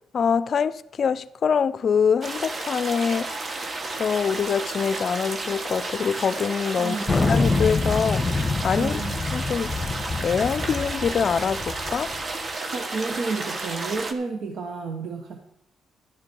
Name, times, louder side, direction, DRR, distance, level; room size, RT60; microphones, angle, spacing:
voice 1, 0.1-3.3 4.0-7.0 7.3-9.0 9.3-9.7 10.2-12.1, left 6 dB, 50° left, 0.5 m, -24 dB
sound 1, 2.2-14.1, right 2 dB, 35° right, 1.1 m, -32 dB
voice 2, 6.8-7.3 8.8-9.2 12.7-15.4, right 4 dB, 65° right, 1.1 m, -31 dB
Thunder, 7.1-12.2, left 3 dB, 25° left, 1.2 m, -26 dB
12.0 x 9.7 x 4.6 m
cardioid pair, 90°, 0 cm